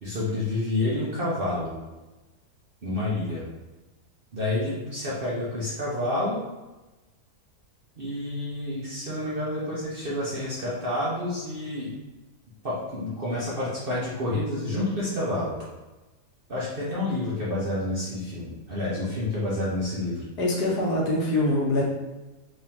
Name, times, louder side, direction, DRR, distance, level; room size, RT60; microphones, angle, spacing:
voice 1, 0.0-1.7 2.8-3.4 4.3-6.4 8.0-11.9 12.6-15.5 16.5-20.2, left 1 dB, 45° right, -7 dB, 0.8 m, -29 dB
voice 2, 20.4-21.8, left 1 dB, 75° left, -2 dB, 1.4 m, -24 dB
3.6 x 3.1 x 2.8 m, 1.1 s
omnidirectional pair, 1.7 m